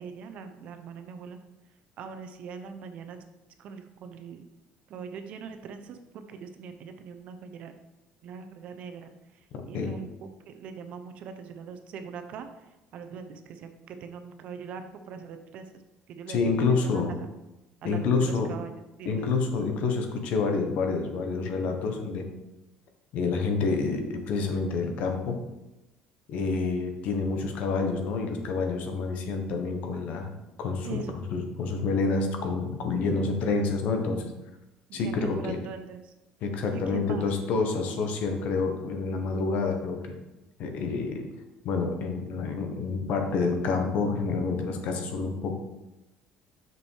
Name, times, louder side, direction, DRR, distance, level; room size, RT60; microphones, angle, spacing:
voice 1, 0.0-1.4 2.0-3.2 3.6-4.4 4.9-7.7 8.2-15.8 16.1-16.8 17.2-17.3 17.8-19.3 30.8-31.3 34.9-36.1 36.7-37.3, right 6 dB, 55° right, 8 dB, 0.8 m, -42 dB
voice 2, 16.3-17.1 17.8-18.5 19.0-22.3 23.1-25.4 26.3-30.3 30.6-31.0 31.3-34.2 34.9-35.6 36.4-40.1 40.6-41.3 41.6-45.6, left 4 dB, 60° left, 5 dB, 1.3 m, -28 dB
6.1 x 6.0 x 4.7 m, 0.99 s
cardioid pair, 140°, 3 cm